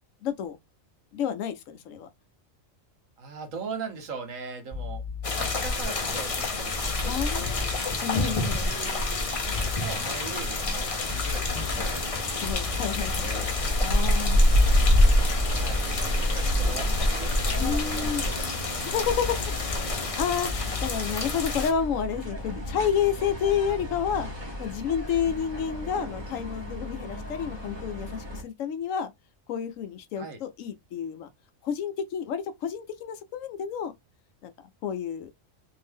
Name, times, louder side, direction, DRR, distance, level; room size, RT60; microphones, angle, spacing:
voice 1, 0.2-0.6 1.1-2.1 7.0-7.7 8.0-8.7 12.4-13.3 13.8-14.5 17.6-18.2 18.9-24.3 24.6-29.1 29.5-31.3 31.6-33.9 34.4-34.5 34.8-35.3, left 8 dB, 75° left, 1.0 m, -30 dB
voice 2, 3.2-7.8 8.2-13.5 15.3-19.3 30.2-30.4, right 5 dB, 75° right, 1.3 m, -41 dB
sound 1, 4.7-5.7 6.8-7.7 9.4-9.7 11.1-11.7 12.4-13.7 14.8-15.7 17.4-17.7 19.1-19.7 20.4-20.8, left 5 dB, 5° left, 1.0 m, -34 dB
sound 2, 5.2-21.7, left 1 dB, 40° left, 0.5 m, -26 dB
sound 3, 11.5-28.4, left 1 dB, 20° right, 1.1 m, -38 dB
2.7 x 2.7 x 3.4 m
omnidirectional pair, 1.4 m